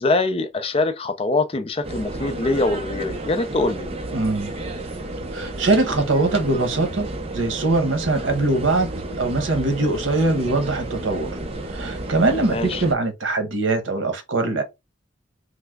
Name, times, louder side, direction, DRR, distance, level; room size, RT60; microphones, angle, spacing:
voice 1, 0.0-3.9 12.4-12.8, left 2 dB, 30° left, 0.4 m, -23 dB
sound 1, 1.8-12.9, right 2 dB, 30° right, 0.5 m, -32 dB
voice 2, 4.1-4.5 5.3-7.1 7.3-8.9 9.2-11.3 11.7-14.6, right 2 dB, 85° right, 0.9 m, -22 dB
3.2 x 2.0 x 3.5 m
head